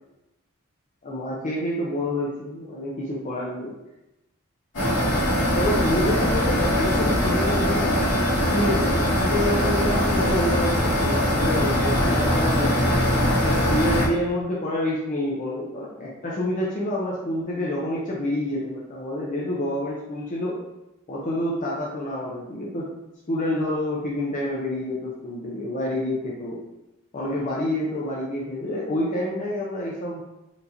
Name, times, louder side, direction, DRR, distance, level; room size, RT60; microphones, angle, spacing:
voice 1, 1.0-3.7 5.6-8.2 8.5-13.0 13.4-20.6 21.1-22.9 23.3-26.6 27.1-30.2, left 1 dB, 35° left, -5 dB, 0.6 m, -28 dB
sound 1, 4.7-14.1, equal, 60° left, 1.5 m, -22 dB
4.5 x 2.7 x 2.6 m, 0.94 s
head